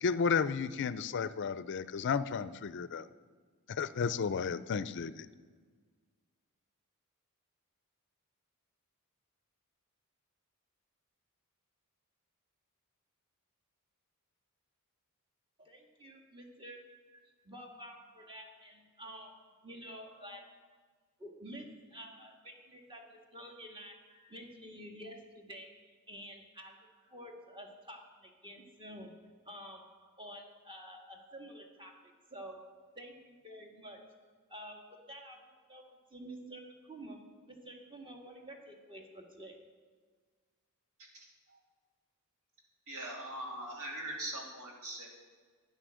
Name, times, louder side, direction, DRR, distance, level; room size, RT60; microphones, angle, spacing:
voice 1, 0.0-3.0 3.8-5.3, left 5 dB, 55° left, 15 dB, 0.5 m, -33 dB
voice 2, 15.6-20.7 21.2-25.7 26.1-34.1 34.5-39.6, equal, 25° right, 2 dB, 1.7 m, -50 dB
voice 3, 41.0-41.6 42.9-45.1, right 1 dB, 75° right, -1 dB, 2.9 m, -42 dB
11.5 x 9.6 x 6.3 m, 1.5 s
head